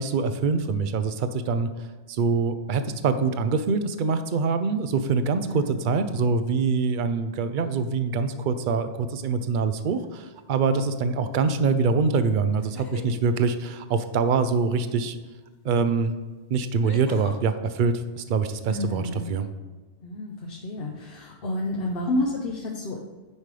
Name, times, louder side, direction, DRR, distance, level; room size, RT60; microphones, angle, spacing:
voice 1, 0.0-15.1 15.6-16.1 16.5-19.5, right 4 dB, 55° right, 10 dB, 0.6 m, -24 dB
sound 1, 10.0-10.4 12.5-13.2 15.5-15.6 16.8-17.4, left 2 dB, 25° left, 0.5 m, -41 dB
voice 2, 18.6-19.3 20.0-23.0, left 1 dB, 55° left, 1 dB, 0.9 m, -30 dB
9.7 x 5.2 x 3.3 m, 1.3 s
omnidirectional pair, 1.3 m